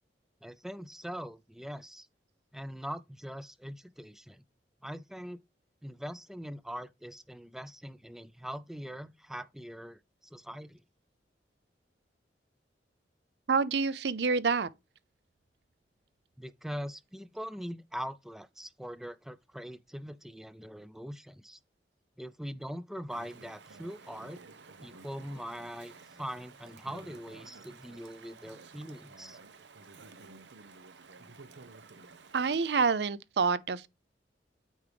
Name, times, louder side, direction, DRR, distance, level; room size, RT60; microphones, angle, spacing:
voice 1, 0.4-2.1 2.5-4.4 4.8-5.4 5.8-10.8 16.4-21.6 22.2-24.4 24.8-29.4, equal, ahead, 0.4 m, -42 dB
voice 2, 13.5-14.7 32.3-33.9, right 5 dB, 65° right, 0.5 m, -27 dB
Chatter / Stream, 23.1-32.9, right 4 dB, 85° right, 0.9 m, -52 dB
8.6 x 4.7 x 3.4 m
head